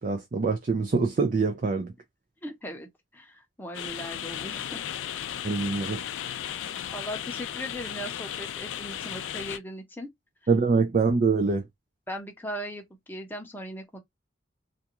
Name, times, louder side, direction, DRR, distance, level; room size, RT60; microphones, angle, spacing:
voice 1, 0.0-1.9 5.4-6.1 10.5-11.7, right 4 dB, 40° right, 0.4 m, -24 dB
voice 2, 2.4-2.9 3.1-4.8 6.9-10.1 12.1-14.0, equal, 10° left, 0.6 m, -38 dB
sound 1, 3.7-9.6, left 10 dB, 80° left, 0.3 m, -35 dB
2.5 x 2.2 x 2.8 m
head